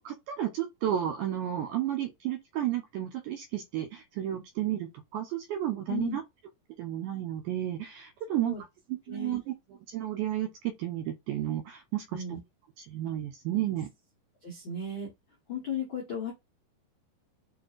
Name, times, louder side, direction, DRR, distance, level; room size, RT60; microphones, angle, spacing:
voice 1, 0.0-6.2 6.8-9.5 9.9-12.2 12.8-13.9, right 12 dB, 80° right, 1.8 m, -32 dB
voice 2, 8.3-8.6 9.1-9.4 12.1-12.4 14.4-15.1 15.5-16.3, left 4 dB, 80° left, 1.1 m, -35 dB
6.0 x 2.5 x 2.4 m
omnidirectional pair, 4.1 m